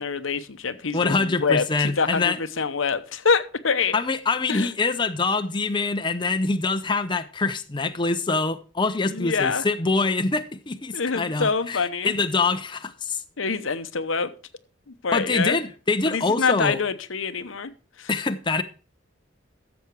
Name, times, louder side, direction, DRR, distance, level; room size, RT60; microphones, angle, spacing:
voice 1, 0.0-4.0 4.5-4.7 9.1-9.6 10.9-12.1 13.4-14.3 15.0-15.6 16.1-17.7 18.0-18.1, left 5 dB, 85° left, 0.9 m, -25 dB
voice 2, 0.9-2.4 3.9-13.2 15.1-16.8 18.1-18.6, left 3 dB, 25° left, 0.7 m, -25 dB
13.0 x 7.2 x 4.7 m
head